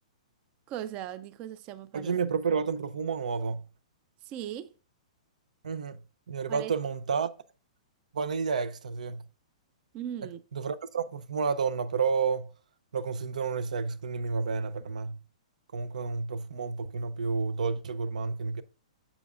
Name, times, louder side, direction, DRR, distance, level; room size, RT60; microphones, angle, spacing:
voice 1, 0.7-2.1 4.2-4.7 6.5-6.7 9.9-10.4, right 11 dB, 30° right, 0.3 m, -38 dB
voice 2, 1.9-3.7 5.6-7.3 8.1-9.3 10.2-12.5 12.9-15.2 15.7-18.6, right 5 dB, 90° right, 0.5 m, -31 dB
7.0 x 7.0 x 2.4 m
hypercardioid pair, 150°, 4 cm